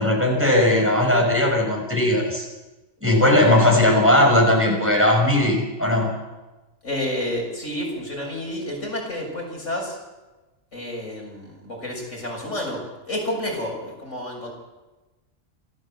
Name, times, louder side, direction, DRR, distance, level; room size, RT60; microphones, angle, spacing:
voice 1, 0.0-2.5 3.0-6.1, left 1 dB, 10° right, -1 dB, 5.7 m, -18 dB
voice 2, 6.8-10.0 10.7-14.5, left 1 dB, 70° left, 0 dB, 6.7 m, -30 dB
29.5 x 13.5 x 7.7 m, 1.1 s
omnidirectional pair, 1.3 m